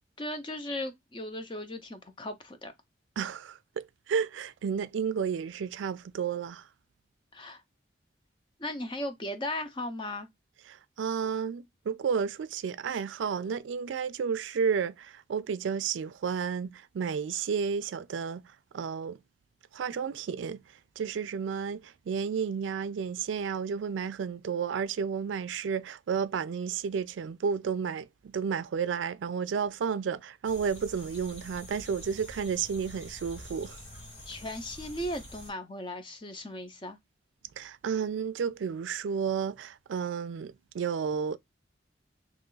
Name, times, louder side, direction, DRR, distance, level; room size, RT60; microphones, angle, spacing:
voice 1, 0.2-2.7 7.3-7.6 8.6-10.3 34.3-37.0, left 1 dB, 25° left, 0.5 m, -37 dB
voice 2, 3.2-6.6 10.7-18.4 18.7-19.2 19.7-20.6 21.0-33.8 37.6-41.4, right 6 dB, 90° right, 0.3 m, -32 dB
sound 1, 30.4-35.5, equal, 65° left, 2.0 m, -47 dB
3.0 x 2.4 x 3.7 m
head